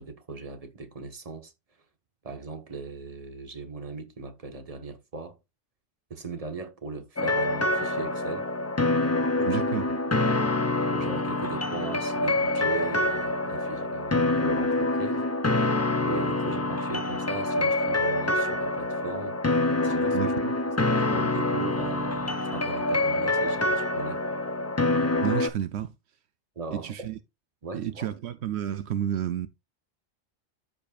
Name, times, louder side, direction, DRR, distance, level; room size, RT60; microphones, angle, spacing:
voice 1, 0.0-1.5 2.2-5.4 6.1-8.5 9.4-10.0 10.9-15.2 16.0-20.3 20.7-24.2 26.5-27.1 27.6-28.1, right 4 dB, 35° right, 1.3 m, -38 dB
sound 1, 7.2-25.5, left 2 dB, 20° left, 0.5 m, -26 dB
voice 2, 9.5-9.9 20.1-20.5 25.2-25.9 26.7-27.2 27.7-29.5, right 10 dB, 75° right, 0.9 m, -30 dB
13.5 x 5.0 x 2.4 m
omnidirectional pair, 1.1 m